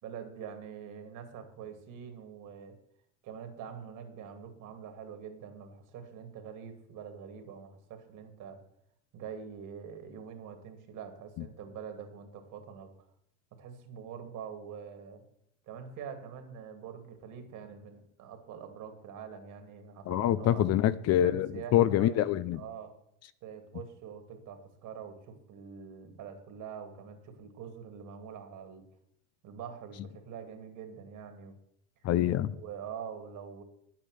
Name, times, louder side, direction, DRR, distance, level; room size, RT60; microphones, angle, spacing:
voice 1, 0.0-2.8 3.2-8.6 9.1-12.9 13.6-15.2 15.7-20.6 21.2-22.2 22.5-22.9 23.4-28.8 29.4-31.6 32.5-33.6, right 7 dB, 55° right, 2.7 m, -45 dB
voice 2, 20.1-22.6 32.0-32.6, left 12 dB, 45° left, 0.6 m, -26 dB
10.0 x 8.7 x 6.6 m
supercardioid pair, 95°, 37 cm